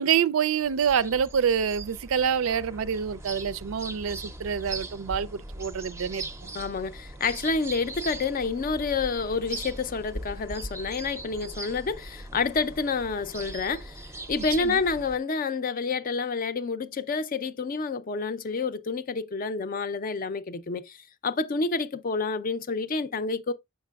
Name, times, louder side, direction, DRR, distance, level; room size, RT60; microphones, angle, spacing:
voice 1, 0.0-6.5 14.6-14.8, right 7 dB, 90° right, 0.4 m, -27 dB
sound 1, 0.6-15.2, right 2 dB, 15° right, 0.5 m, -40 dB
voice 2, 6.5-14.0 14.3-21.0 21.2-23.5, left 4 dB, 45° left, 0.5 m, -29 dB
7.4 x 5.9 x 2.3 m
head